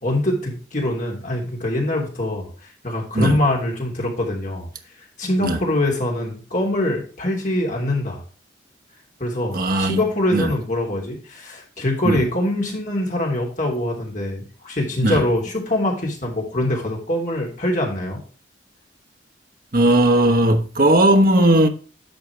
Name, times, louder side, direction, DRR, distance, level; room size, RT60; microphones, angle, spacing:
voice 1, 0.0-4.7 5.2-8.2 9.2-18.2, left 1 dB, 40° left, 3.3 m, -23 dB
voice 2, 9.5-10.0 10.3-10.5 12.0-12.2 15.0-15.2 19.7-21.7, right 1 dB, 45° right, 1.2 m, -17 dB
11.0 x 6.3 x 3.2 m
head